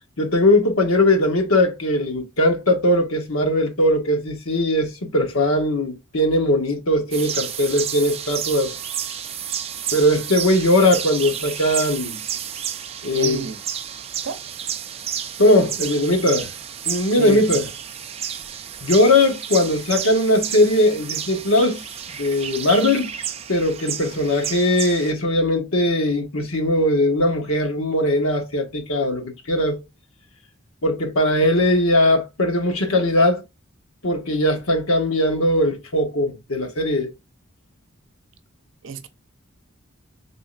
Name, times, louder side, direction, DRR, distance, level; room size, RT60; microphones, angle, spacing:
voice 1, 0.2-8.7 9.9-12.2 13.0-13.4 15.4-16.5 16.9-17.7 18.8-21.8 22.2-23.1 23.5-29.8 30.8-33.4 34.0-37.1, left 1 dB, 80° left, 1.2 m, -19 dB
sound 1, 7.1-25.1, right 9 dB, 30° right, 0.3 m, -31 dB
voice 2, 13.1-13.6 14.2-14.4 17.1-17.6 38.8-39.1, right 4 dB, 65° right, 0.6 m, -30 dB
3.7 x 3.1 x 2.4 m
head